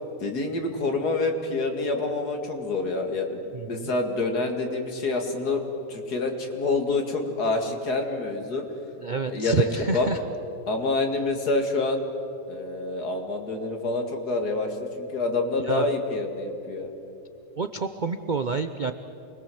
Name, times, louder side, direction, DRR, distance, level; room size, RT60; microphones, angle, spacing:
voice 1, 0.2-3.4 3.7-5.6 5.9-8.6 9.3-10.1 10.7-12.0 12.5-16.9, left 3 dB, 70° left, 4 dB, 2.7 m, -27 dB
voice 2, 3.5-3.9 9.0-10.2 15.6-15.9 17.6-18.9, right 5 dB, 50° right, 9 dB, 0.5 m, -28 dB
27.0 x 21.0 x 7.8 m, 2.8 s
omnidirectional pair, 1.8 m